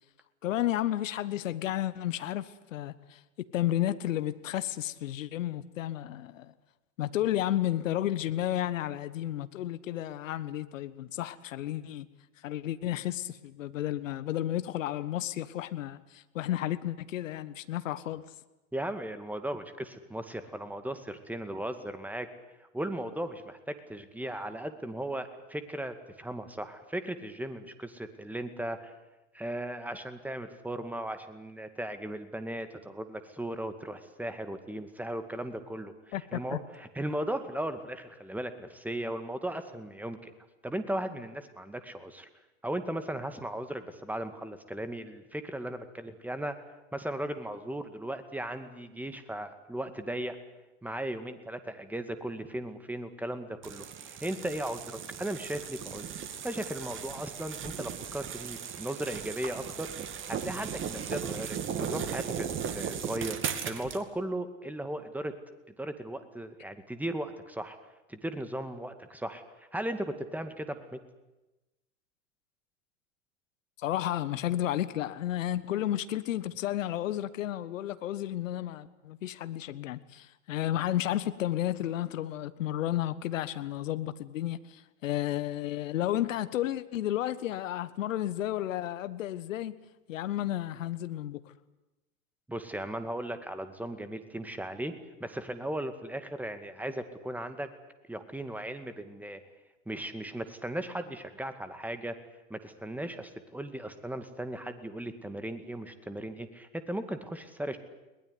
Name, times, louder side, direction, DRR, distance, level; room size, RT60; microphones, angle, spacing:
voice 1, 0.4-6.5 7.0-12.1 12.4-18.2 36.1-36.6 73.8-89.7 90.1-91.5, left 13 dB, 65° left, 1.4 m, -32 dB
voice 2, 18.7-22.3 22.7-28.9 29.3-40.3 40.6-42.3 42.6-46.6 46.9-50.4 50.8-56.1 56.4-59.9 60.3-62.5 62.7-63.4 63.6-65.3 65.8-67.8 68.1-71.0 92.5-94.9 95.2-97.7 98.1-99.4 99.9-102.1 102.5-107.8, right 1 dB, 5° right, 2.2 m, -37 dB
sound 1, 53.6-64.0, right 8 dB, 30° right, 2.5 m, -37 dB
22.0 x 20.0 x 9.8 m
hypercardioid pair, 100°, 41 cm